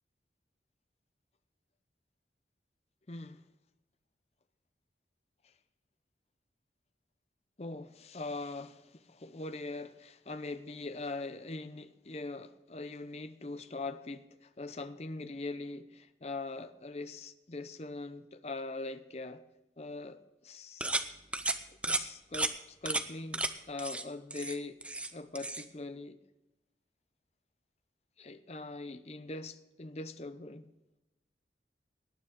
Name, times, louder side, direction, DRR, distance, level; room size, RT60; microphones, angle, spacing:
voice 1, 3.1-3.4 5.4-5.5 7.6-19.4 19.8-20.9 21.7-24.8 25.1-26.2 28.2-30.6, left 2 dB, 35° left, 0.6 m, -42 dB
sound 1, 20.8-21.1 21.3-21.6 21.8-22.0 22.3-22.5 22.9-23.0 23.3-23.5 23.8-24.0 24.3-25.1 25.4-25.6, right 2 dB, 5° right, 0.6 m, -33 dB
18.5 x 9.5 x 3.7 m
head